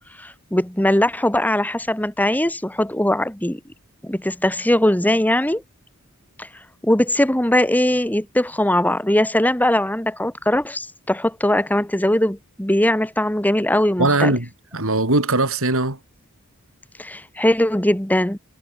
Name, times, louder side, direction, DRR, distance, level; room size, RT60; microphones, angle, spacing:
voice 1, 0.2-3.6 4.0-5.6 6.4-6.5 6.8-14.3 17.0-18.4, left 1 dB, 10° left, 1.9 m, -20 dB
voice 2, 14.0-16.0, right 2 dB, 65° right, 5.2 m, -20 dB
head